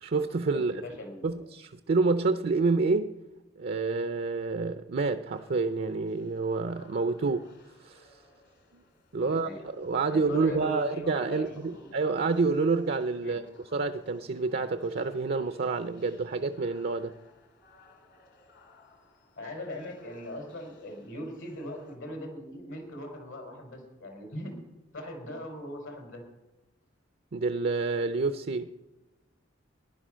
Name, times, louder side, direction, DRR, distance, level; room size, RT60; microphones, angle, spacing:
voice 1, 0.0-0.9 1.2-3.2 3.6-7.5 7.8-8.1 9.1-9.5 9.8-17.2 27.3-28.7, right 3 dB, 50° right, 0.6 m, -28 dB
voice 2, 0.5-1.3 9.2-9.6 10.1-11.9 13.2-13.4 19.4-24.6 24.9-26.2, left 1 dB, 80° left, 4.3 m, -40 dB
sound 1, 5.3-22.0, left 2 dB, 60° left, 2.6 m, -59 dB
15.5 x 11.0 x 6.3 m
head